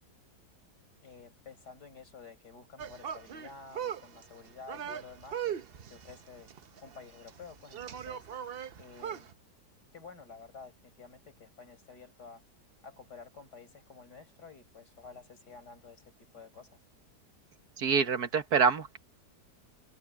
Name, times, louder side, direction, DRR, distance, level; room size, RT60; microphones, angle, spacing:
voice 1, 1.0-5.6 5.9-6.5 6.8-8.3 8.8-9.3 9.9-12.4 12.8-16.8, left 5 dB, 75° left, 6.0 m, -51 dB
sound 1, 2.8-9.3, right 9 dB, 50° right, 0.7 m, -40 dB
voice 2, 17.8-19.0, right 6 dB, 65° right, 1.9 m, -26 dB
open air
omnidirectional pair, 1.8 m